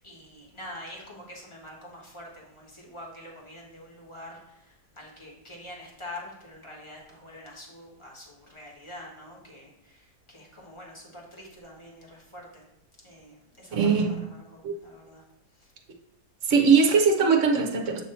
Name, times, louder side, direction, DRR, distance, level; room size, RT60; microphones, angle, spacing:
voice 1, 0.0-12.6 13.0-15.2 15.5-15.7, left 1 dB, 20° left, -2 dB, 1.4 m, -45 dB
voice 2, 13.7-14.2 14.6-14.7 16.4-18.0, right 5 dB, 55° right, 2 dB, 1.1 m, -21 dB
7.5 x 2.9 x 5.6 m, 0.92 s
omnidirectional pair, 1.8 m